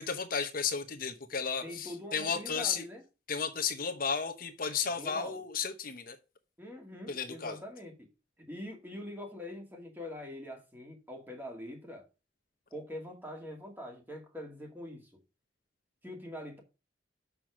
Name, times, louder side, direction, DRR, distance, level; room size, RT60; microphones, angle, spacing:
voice 1, 0.0-2.8 3.3-6.2 7.1-7.6, left 6 dB, 50° left, 0.9 m, -33 dB
voice 2, 1.6-3.0 4.8-5.4 6.6-7.9 8.5-12.0 12.7-15.1 16.0-16.6, left 1 dB, 10° right, 2.3 m, -44 dB
6.7 x 6.0 x 6.2 m
head